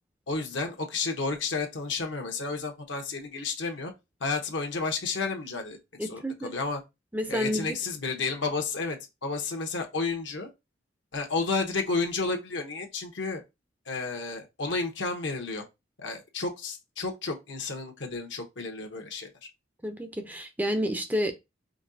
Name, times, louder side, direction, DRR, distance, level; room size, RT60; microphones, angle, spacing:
voice 1, 0.3-3.9 4.2-6.8 7.3-10.5 11.1-13.4 13.9-15.6 16.0-19.3, left 4 dB, 70° left, 1.0 m, -31 dB
voice 2, 6.0-6.5 7.1-7.8 19.8-21.3, equal, 10° right, 0.5 m, -30 dB
5.2 x 2.8 x 2.6 m
head